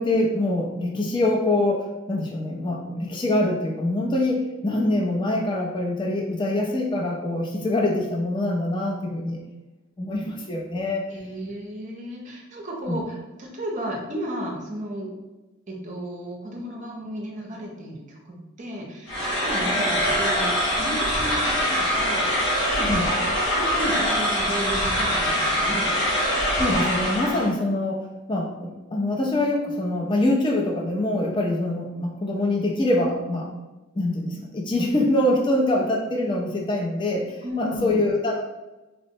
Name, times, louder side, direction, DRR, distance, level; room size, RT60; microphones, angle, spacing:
voice 1, 0.0-9.4 10.0-11.1 12.9-13.0 22.9-23.1 26.6-33.5 34.0-38.4, left 1 dB, 20° left, 0 dB, 0.4 m, -24 dB
voice 2, 11.1-15.1 15.7-22.4 22.7-23.1 23.4-25.9 37.4-38.0, equal, 35° right, -1 dB, 0.6 m, -33 dB
sound 1, 19.1-27.5, equal, 65° left, 1.2 m, -23 dB
4.2 x 2.0 x 2.6 m, 1.1 s
head